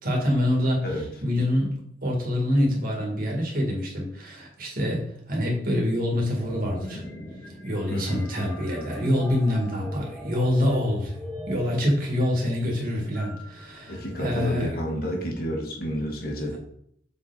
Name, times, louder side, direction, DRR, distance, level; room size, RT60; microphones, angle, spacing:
voice 1, 0.0-0.9 1.2-7.0 7.6-11.1 11.5-14.7, left 1 dB, 55° right, -1 dB, 2.3 m, -26 dB
sound 1, 6.4-14.5, left 1 dB, 10° left, 2.0 m, -41 dB
voice 2, 7.9-8.3 13.9-16.6, equal, 55° left, 0 dB, 1.7 m, -30 dB
6.8 x 4.6 x 4.2 m, 0.68 s
head